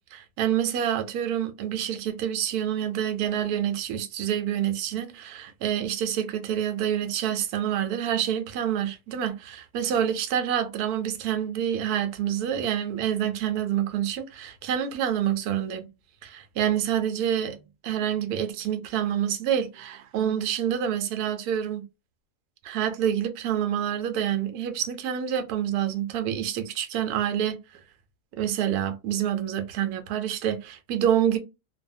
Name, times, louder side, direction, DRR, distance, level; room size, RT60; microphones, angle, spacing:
voice 1, 0.1-15.9 16.2-21.8 22.6-27.6 28.4-31.4, right 10 dB, 75° right, 1.1 m, -27 dB
2.6 x 2.3 x 2.6 m
omnidirectional pair, 1.7 m